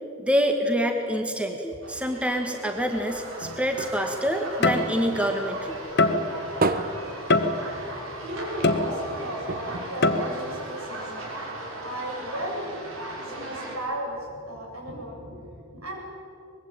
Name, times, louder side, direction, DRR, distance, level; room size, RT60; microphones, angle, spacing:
voice 1, 0.2-5.8, equal, 5° right, 4 dB, 1.7 m, -26 dB
sound 1, 1.8-13.8, right 1 dB, 65° right, 5.8 m, -37 dB
sound 2, 2.8-5.5 5.9-8.1 8.5-8.6 8.8-9.0 9.4-11.0 11.6-11.7, right 2 dB, 40° right, 1.2 m, -33 dB
sound 3, 3.4-3.6 4.6-5.3 6.0-6.5 7.3-7.9 8.6-9.3 10.0-10.5, left 2 dB, 50° left, 1.5 m, -23 dB
voice 2, 7.7-11.1 11.8-12.8 13.2-16.0, right 1 dB, 85° right, 0 dB, 7.8 m, -36 dB
24.5 x 21.0 x 9.0 m, 2.5 s
head